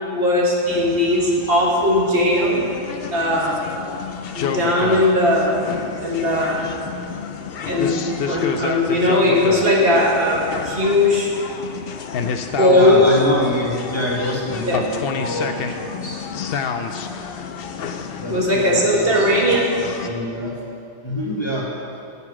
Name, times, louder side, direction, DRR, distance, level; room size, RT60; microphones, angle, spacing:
voice 1, 0.1-2.6 3.1-3.7 4.4-5.6 6.0-6.7 7.7-8.0 8.3-11.3 12.6-13.1 14.6-14.8 18.3-19.7, left 1 dB, 55° right, -2 dB, 1.7 m, -18 dB
sound 1, 0.7-20.1, left 6 dB, 65° left, 0.8 m, -29 dB
voice 2, 12.7-16.2 18.2-20.5 21.0-21.6, left 1 dB, 25° left, -4 dB, 1.5 m, -26 dB
12.0 x 6.9 x 4.9 m, 2.4 s
omnidirectional pair, 1.2 m